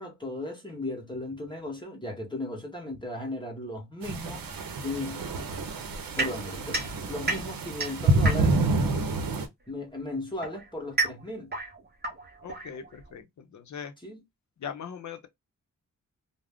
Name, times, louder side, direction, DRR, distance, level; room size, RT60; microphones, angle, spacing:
voice 1, 0.0-5.2 6.2-8.6 9.7-11.5 14.0-14.2, left 2 dB, 15° left, 0.8 m, -36 dB
sound 1, 4.0-9.5, right 2 dB, 85° right, 0.7 m, -28 dB
sound 2, 6.2-8.8 9.8-13.2, right 3 dB, 30° right, 0.6 m, -33 dB
voice 2, 12.4-13.9 14.6-15.3, left 7 dB, 60° left, 0.6 m, -40 dB
2.4 x 2.0 x 3.4 m
wide cardioid pair, 135°, 33 cm